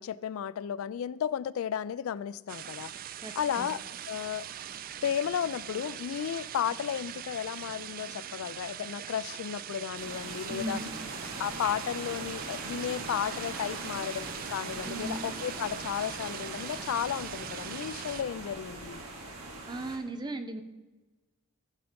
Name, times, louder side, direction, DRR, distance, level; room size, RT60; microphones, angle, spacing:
voice 1, 0.0-2.9 3.4-3.8 4.1-4.5 5.0-10.8 11.4-19.0, left 9 dB, 70° left, 18 dB, 0.3 m, -33 dB
sound 1, 2.5-18.2, right 10 dB, 40° right, 0.3 m, -42 dB
voice 2, 3.2-3.7 10.5-10.9 14.9-15.2 19.7-20.6, right 1 dB, 20° right, 8 dB, 0.7 m, -37 dB
sound 2, 10.0-20.0, right 2 dB, 90° right, 2.1 m, -41 dB
15.0 x 5.8 x 5.1 m, 1.2 s
head